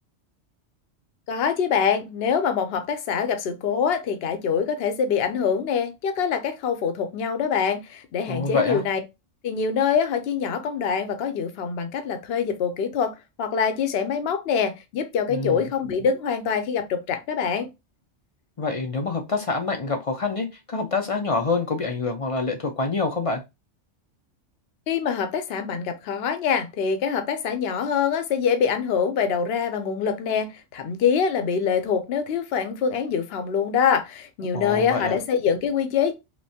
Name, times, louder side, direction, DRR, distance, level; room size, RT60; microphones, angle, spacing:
voice 1, 1.3-9.0 9.4-17.7 24.9-36.1, left 7 dB, 60° left, 0.8 m, -24 dB
voice 2, 8.3-8.8 15.3-15.7 18.6-23.4 34.5-35.2, left 3 dB, 45° left, 0.5 m, -26 dB
3.4 x 3.0 x 2.7 m
omnidirectional pair, 1.2 m